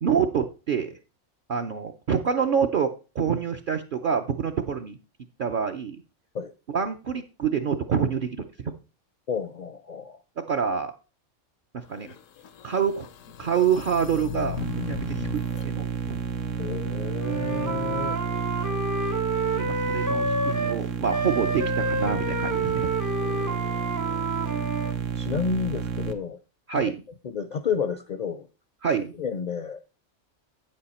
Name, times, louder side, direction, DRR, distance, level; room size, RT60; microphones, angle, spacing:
voice 1, 0.0-0.9 1.5-5.0 5.4-6.0 6.7-8.7 10.5-10.9 11.9-12.1 12.6-13.1 13.4-16.2 19.6-22.9 26.7-27.0 28.8-29.1, right 7 dB, 55° right, 4 dB, 0.7 m, -27 dB
voice 2, 9.3-10.2 16.6-18.2 23.2-23.8 25.1-26.4 26.7-26.9 27.2-28.5 29.1-29.8, left 6 dB, 50° left, 11 dB, 0.5 m, -31 dB
sound 1, 11.9-15.7, left 10 dB, 90° left, 1.1 m, -37 dB
sound 2, 14.6-26.1, right 7 dB, 75° right, 1.3 m, -31 dB
Wind instrument woodwind instrument, 17.2-20.8 21.1-25.0, right 2 dB, 35° right, 0.3 m, -29 dB
8.6 x 7.5 x 4.2 m, 0.32 s
omnidirectional pair, 1.3 m